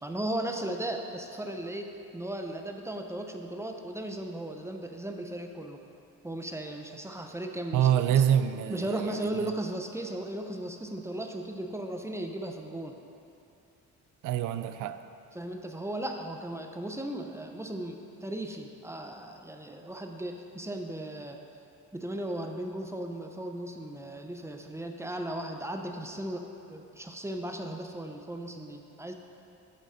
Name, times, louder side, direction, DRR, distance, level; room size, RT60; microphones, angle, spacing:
voice 1, 0.0-5.8 6.2-8.2 8.7-13.0 15.3-21.4 21.9-29.1, right 1 dB, 10° right, 4 dB, 0.7 m, -36 dB
voice 2, 7.7-9.2 14.2-15.0, right 10 dB, 85° right, 11 dB, 0.5 m, -25 dB
8.5 x 7.5 x 4.2 m, 2.7 s
cardioid pair, 90°, 30 cm